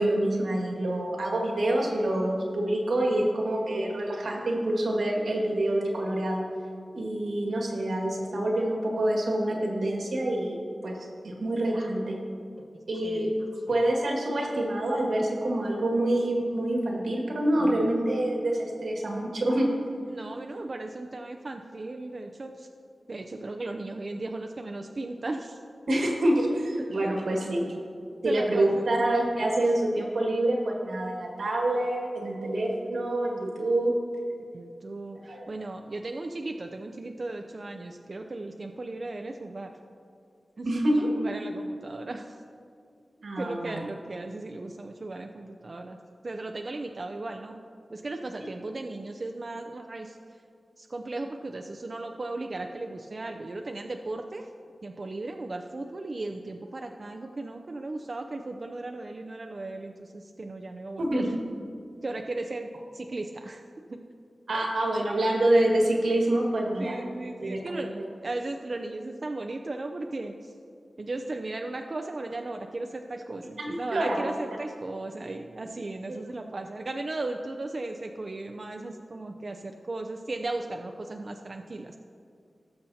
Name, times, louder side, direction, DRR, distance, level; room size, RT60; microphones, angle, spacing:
voice 1, 0.0-6.4 6.9-12.2 12.9-13.3 13.7-19.7 25.9-27.7 28.2-33.9 35.2-35.5 40.6-41.1 43.2-43.8 61.0-61.4 64.5-67.0 67.4-67.8 73.6-74.2 76.1-76.2, right 1 dB, 90° right, -1 dB, 1.7 m, -26 dB
voice 2, 13.0-13.3 17.6-18.2 20.1-22.7 23.1-25.6 26.0-26.1 28.2-28.8 34.5-39.7 40.6-40.7 41.2-42.4 43.4-46.0 46.2-47.5 47.9-50.2 50.8-54.5 54.8-61.3 62.0-63.6 63.9-64.0 64.5-64.6 66.8-70.5 71.0-82.0, right 2 dB, 50° right, 4 dB, 0.5 m, -36 dB
18.0 x 6.7 x 2.8 m, 2.4 s
wide cardioid pair, 75°, 0 cm